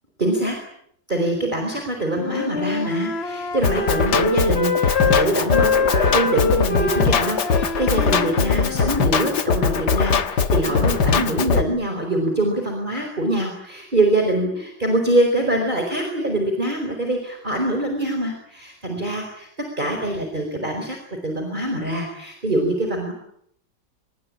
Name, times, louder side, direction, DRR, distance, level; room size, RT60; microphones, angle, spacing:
voice 1, 0.2-0.6 1.1-19.5 19.8-23.1, right 1 dB, 25° right, 3 dB, 4.7 m, -24 dB
Wind instrument woodwind instrument, 2.1-8.9, left 4 dB, 35° left, 1.6 m, -24 dB
Drum kit, 3.6-11.6, left 5 dB, 65° left, 2.0 m, -21 dB
26.5 x 22.5 x 8.7 m, 0.70 s
omnidirectional pair, 1.9 m